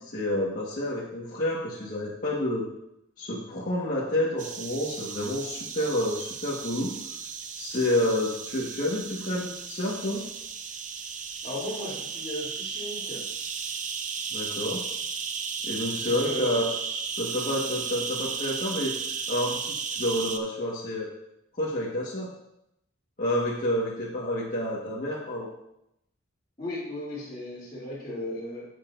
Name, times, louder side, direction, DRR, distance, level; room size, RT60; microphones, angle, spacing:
voice 1, 0.0-2.6 3.2-6.9 7.5-10.2 14.3-14.8 15.6-16.7 17.2-18.9 19.3-21.1 21.6-22.3 23.2-25.5, left 1 dB, 45° left, -7 dB, 1.5 m, -29 dB
Insect Buildup Forest, 4.4-20.4, right 6 dB, 40° right, 0.6 m, -35 dB
voice 2, 11.4-13.2 16.0-16.6 26.6-28.7, left 1 dB, 25° left, -11 dB, 3.0 m, -36 dB
11.5 x 8.4 x 2.6 m, 0.83 s
head